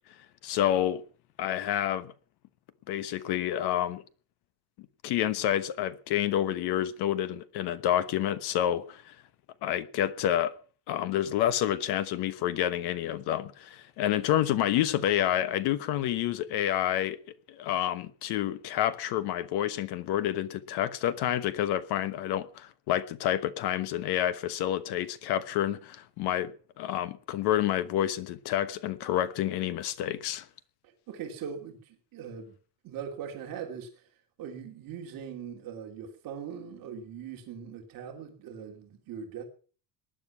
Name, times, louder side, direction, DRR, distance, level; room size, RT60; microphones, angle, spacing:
voice 1, 0.4-1.0 1.4-2.1 2.9-4.0 5.0-9.1 9.6-10.5 10.9-17.2 17.5-26.5 26.8-30.4, left 11 dB, 50° left, 1.2 m, -28 dB
voice 2, 31.1-32.5 32.8-34.0 34.4-39.4, right 7 dB, 45° right, 3.0 m, -40 dB
19.5 x 10.5 x 6.0 m
cardioid pair, 175°, 48 cm